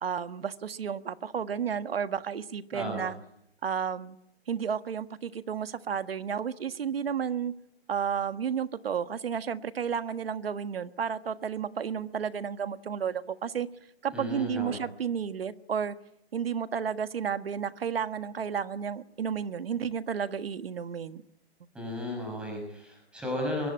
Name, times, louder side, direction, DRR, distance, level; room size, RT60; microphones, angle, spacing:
voice 1, 0.0-3.1 3.6-4.2 4.5-7.5 7.9-13.7 14.0-16.0 16.3-21.2, right 7 dB, 65° right, 11 dB, 1.5 m, -32 dB
voice 2, 2.7-3.1 14.1-14.8 21.7-23.7, left 1 dB, 5° right, 2 dB, 6.3 m, -34 dB
23.5 x 22.0 x 8.7 m, 0.75 s
hypercardioid pair, 175°, 32 cm